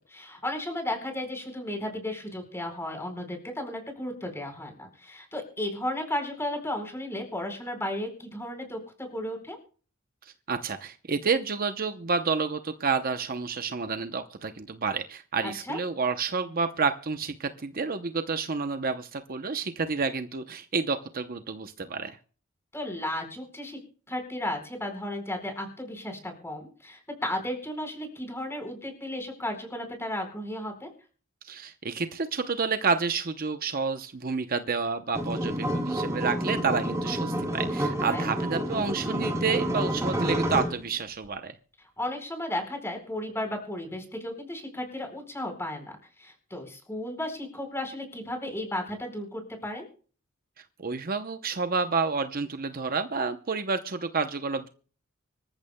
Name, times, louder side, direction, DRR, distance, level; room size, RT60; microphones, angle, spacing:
voice 1, 0.1-9.6 15.4-15.8 22.7-23.8 24.1-30.9 38.0-38.3 42.0-49.8, left 1 dB, 10° left, 3 dB, 4.5 m, -34 dB
voice 2, 10.5-22.2 31.4-41.5 50.8-54.7, right 5 dB, 45° right, 9 dB, 0.7 m, -29 dB
sound 1, 35.1-40.8, right 1 dB, 15° right, 2.8 m, -29 dB
25.5 x 14.0 x 2.2 m, 0.41 s
head